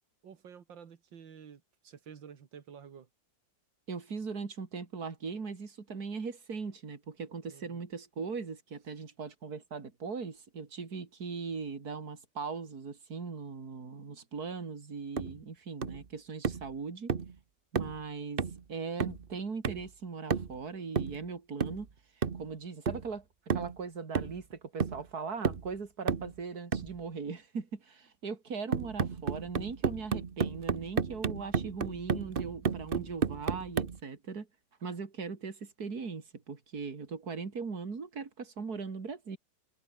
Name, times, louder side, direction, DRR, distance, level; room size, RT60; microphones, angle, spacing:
voice 1, 0.2-3.1 7.5-7.8, right 7 dB, 90° right, 2.5 m, -51 dB
voice 2, 3.9-17.1 17.7-18.4 18.7-21.9 22.3-23.2 23.5-34.5 34.8-39.4, right 5 dB, 55° right, 3.3 m, -39 dB
sound 1, 15.2-15.4 15.8-16.1 16.4-16.7 17.1-17.3 17.8-18.0 18.4-18.6 19.0-19.3 19.6-19.9 20.3-20.6 21.0-21.2 21.6-21.9 22.2-22.5 22.9-23.1 23.5-23.8 24.2-24.5 24.8-25.1 25.4-25.7 26.1-26.3 26.7-27.0 28.7-34.0, right 6 dB, 35° right, 1.1 m, -32 dB
omnidirectional pair, 2.0 m